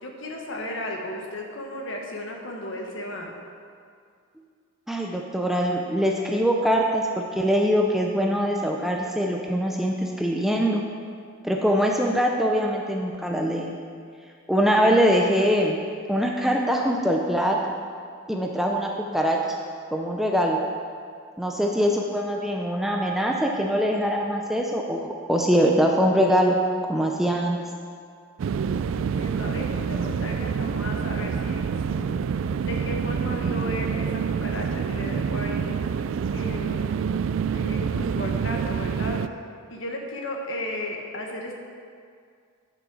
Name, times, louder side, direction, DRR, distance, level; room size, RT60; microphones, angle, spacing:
voice 1, 0.0-3.3 28.9-32.2 32.7-35.8 36.3-36.9 37.5-39.2 39.7-41.5, left 1 dB, 60° left, 1 dB, 1.4 m, -34 dB
voice 2, 4.9-10.8 11.4-13.7 14.5-15.8 16.1-17.6 18.3-19.4 19.9-20.6 21.4-26.5 26.9-27.6, equal, ahead, 0 dB, 0.5 m, -23 dB
sound 1, 28.4-39.3, right 6 dB, 65° right, 0.3 m, -27 dB
10.0 x 6.2 x 6.1 m, 2.2 s
head